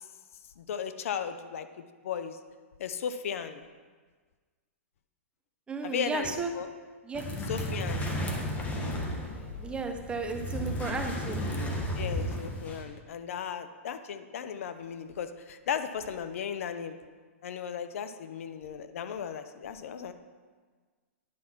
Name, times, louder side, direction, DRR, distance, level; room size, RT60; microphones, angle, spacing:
voice 1, 0.6-1.7 2.0-2.4 2.8-3.6 5.8-6.7 7.5-8.1 12.0-17.0 17.4-20.1, left 8 dB, 65° left, 10 dB, 0.7 m, -36 dB
voice 2, 5.7-6.5 7.0-7.2 9.6-11.4, right 4 dB, 15° right, 5 dB, 0.9 m, -34 dB
sound 1, 7.2-12.8, equal, 20° left, 1.4 m, -33 dB
10.0 x 5.5 x 6.0 m, 1.5 s
hypercardioid pair, 125°, 8 cm